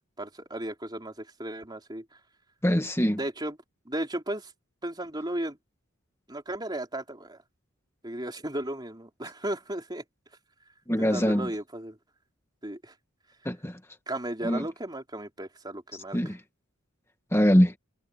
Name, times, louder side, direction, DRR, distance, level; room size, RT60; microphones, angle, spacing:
voice 1, 0.2-2.2 3.2-3.6 3.9-4.5 4.8-5.6 6.3-7.4 8.0-10.0 11.0-12.0 12.6-12.9 14.1-16.2, right 1 dB, 20° right, 3.9 m, -35 dB
voice 2, 2.6-3.2 10.9-11.5 13.5-13.8 14.4-14.6 16.1-16.4 17.3-17.7, equal, 10° left, 2.0 m, -23 dB
head